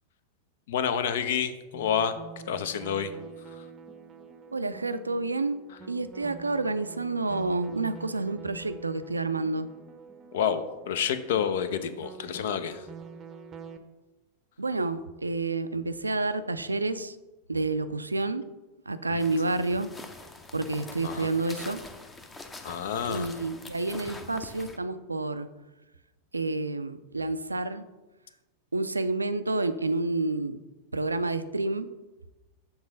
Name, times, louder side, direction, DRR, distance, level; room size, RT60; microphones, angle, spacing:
voice 1, 0.7-2.1 2.5-3.1 3.5-3.6 10.3-12.9 19.1-19.2 21.0-21.3 22.6-23.3, left 8 dB, 55° left, 12 dB, 0.5 m, -29 dB
sound 1, 1.7-13.8, right 6 dB, 25° right, 0.6 m, -47 dB
voice 2, 4.5-5.6 5.9-9.7 14.6-17.2 17.5-18.4 18.9-19.9 20.5-21.8 23.1-25.5 26.3-27.8 28.7-30.6 30.9-31.9, right 2 dB, 80° right, 12 dB, 0.4 m, -29 dB
sound 2, 19.2-24.8, left 3 dB, 15° left, 0.6 m, -44 dB
7.1 x 3.7 x 5.0 m, 1.1 s
figure-of-eight pair, 90°, 0 cm